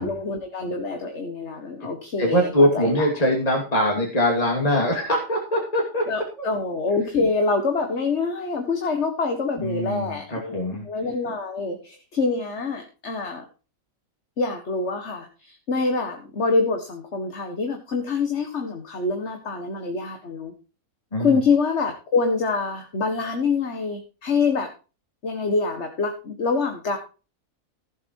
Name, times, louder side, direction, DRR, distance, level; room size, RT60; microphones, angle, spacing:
voice 1, 0.0-3.1 6.1-13.4 14.4-20.5 21.2-24.7 25.2-27.0, left 4 dB, 55° left, 5 dB, 1.9 m, -25 dB
voice 2, 2.2-6.1 6.4-6.5 9.6-10.9 21.1-21.4, equal, 25° left, 0 dB, 2.8 m, -22 dB
14.5 x 7.8 x 4.7 m, 0.34 s
omnidirectional pair, 1.4 m